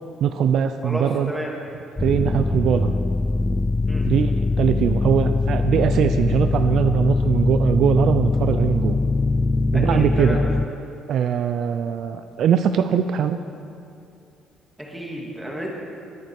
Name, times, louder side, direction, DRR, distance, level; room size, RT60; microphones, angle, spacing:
voice 1, 0.2-1.3 2.0-2.9 4.1-9.0 9.7-10.4 11.1-13.4, right 8 dB, 55° right, 9 dB, 0.5 m, -21 dB
voice 2, 0.8-1.5 3.9-4.1 9.7-10.5 14.8-15.7, equal, 5° right, -2 dB, 2.3 m, -31 dB
sound 1, 2.0-10.7, left 3 dB, 15° left, 0.3 m, -22 dB
20.5 x 9.6 x 4.7 m, 2.6 s
cardioid pair, 145°, 0 cm